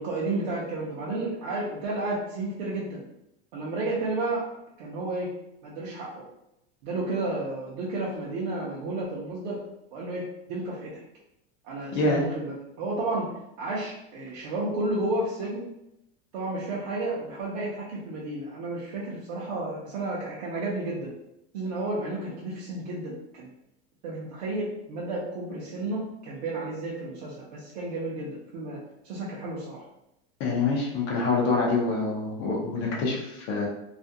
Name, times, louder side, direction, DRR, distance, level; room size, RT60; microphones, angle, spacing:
voice 1, 0.0-3.0 3.5-4.4 4.8-5.3 5.6-6.2 6.8-9.6 9.9-11.0 11.6-13.3 13.6-15.6 16.3-21.1 21.5-23.5 24.0-28.8 29.0-29.8, right 2 dB, 45° right, -6 dB, 0.5 m, -32 dB
voice 2, 11.9-12.2 30.4-33.7, left 3 dB, 25° left, -2 dB, 0.4 m, -26 dB
2.4 x 2.1 x 2.7 m, 0.83 s
supercardioid pair, 175°, 31 cm